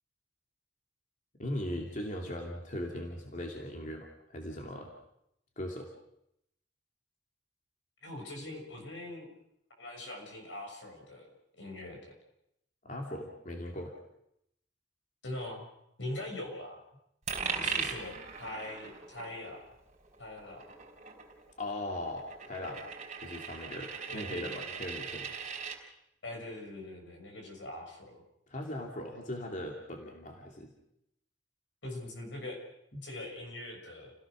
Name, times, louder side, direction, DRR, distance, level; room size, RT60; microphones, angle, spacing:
voice 1, 1.4-4.9 5.6-5.9 12.8-13.9 21.6-22.9 23.2-25.3 28.5-30.7 32.9-33.1, left 1 dB, 45° left, 1 dB, 2.8 m, -39 dB
voice 2, 8.0-9.3 9.8-11.3 11.6-12.0 15.2-15.7 16.0-16.8 17.5-19.6 20.2-20.7 24.1-24.7 26.2-28.2 31.8-32.6 33.0-34.1, left 1 dB, 85° left, 2 dB, 6.7 m, -42 dB
Coin (dropping), 17.3-25.8, right 6 dB, 45° right, 4.2 m, -40 dB
30.0 x 17.0 x 6.3 m, 0.79 s
head